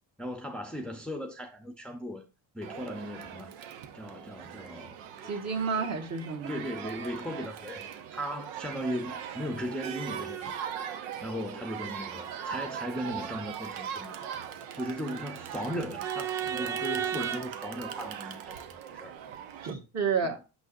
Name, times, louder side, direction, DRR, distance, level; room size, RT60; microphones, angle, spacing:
voice 1, 0.2-2.3 2.5-3.5 3.9-5.0 5.2-5.9 6.5-10.6 11.2-14.1 14.7-19.2 20.2-20.4, equal, ahead, 0.7 m, -37 dB
Crowd, 2.6-19.7, right 8 dB, 90° right, 1.0 m, -38 dB
voice 2, 5.3-6.5 19.6-20.4, right 5 dB, 35° right, 1.7 m, -30 dB
6.1 x 6.1 x 2.6 m
cardioid pair, 110°, 46 cm